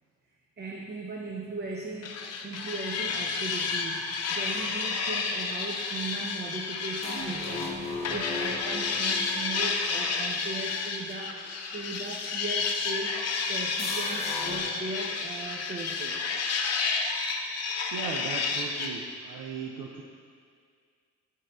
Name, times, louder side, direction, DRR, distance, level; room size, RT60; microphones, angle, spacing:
voice 1, 0.6-13.2 13.5-16.2, right 2 dB, 35° right, -1 dB, 0.7 m, -38 dB
sound 1, 2.0-7.7 8.0-18.9, left 4 dB, 55° left, 0.7 m, -31 dB
sound 2, 7.0-10.8 13.8-14.6, left 3 dB, 20° left, 0.8 m, -37 dB
voice 2, 17.9-20.0, right 6 dB, 85° right, 0 dB, 0.5 m, -37 dB
9.2 x 6.3 x 2.3 m, 2.1 s
cardioid pair, 90°, 30 cm